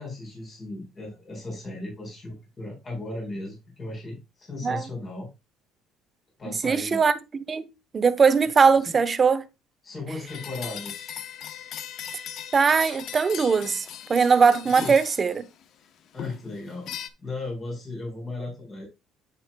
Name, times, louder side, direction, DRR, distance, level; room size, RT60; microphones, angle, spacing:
voice 1, 0.0-5.3 6.4-7.0 8.9-9.0 9.8-11.1 14.7-15.0 16.1-16.9 17.2-18.9, left 2 dB, 30° left, 4.3 m, -36 dB
voice 2, 6.5-7.1 7.5-7.7 7.9-9.4 12.5-15.4, right 5 dB, 30° right, 0.8 m, -20 dB
sound 1, 10.3-15.6 16.2-17.1, left 9 dB, 55° left, 0.7 m, -39 dB
9.3 x 7.8 x 2.2 m
cardioid pair, 125°, 0 cm